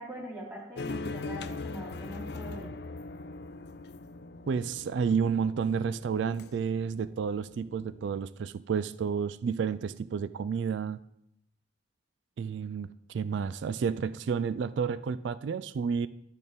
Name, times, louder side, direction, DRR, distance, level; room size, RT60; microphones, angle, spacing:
voice 1, 0.0-2.8, right 1 dB, 15° right, -3 dB, 3.0 m, -42 dB
sound 1, 0.8-8.2, left 3 dB, 55° left, 0.4 m, -41 dB
voice 2, 4.5-11.0 12.4-16.1, right 6 dB, 65° right, 16 dB, 0.3 m, -31 dB
12.0 x 6.3 x 3.6 m, 0.77 s
head